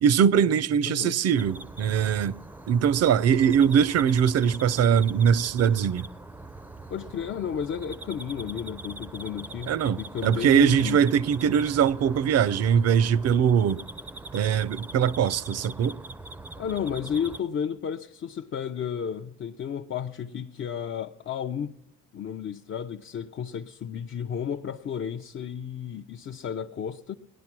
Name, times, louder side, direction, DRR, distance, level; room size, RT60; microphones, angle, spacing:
voice 1, 0.0-2.4 2.7-6.1 9.7-13.8 14.3-16.0, right 8 dB, 55° right, 0.5 m, -22 dB
voice 2, 0.9-1.2 6.9-9.7 10.0-11.0 16.6-21.8 22.1-27.1, left 8 dB, 45° left, 0.5 m, -32 dB
sound 1, 1.3-17.4, right 2 dB, 5° right, 0.5 m, -42 dB
18.5 x 10.5 x 6.0 m
cardioid pair, 90°, 30 cm